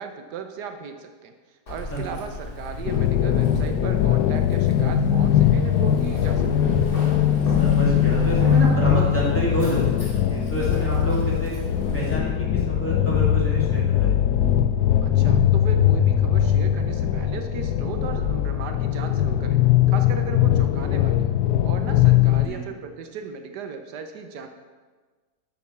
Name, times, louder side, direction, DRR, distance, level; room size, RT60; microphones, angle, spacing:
voice 1, 0.0-6.8 15.0-19.6 19.9-21.4 21.6-24.5, right 6 dB, 80° right, 6 dB, 1.3 m, -36 dB
Keys jangling, 1.7-12.2, left 2 dB, 35° left, 1.4 m, -34 dB
sound 1, 2.9-22.5, left 10 dB, 80° left, 1.1 m, -20 dB
voice 2, 7.6-11.5 11.9-14.2 22.3-22.6, right 1 dB, 10° left, -7 dB, 2.3 m, -28 dB
7.5 x 6.0 x 6.9 m, 1.4 s
omnidirectional pair, 1.8 m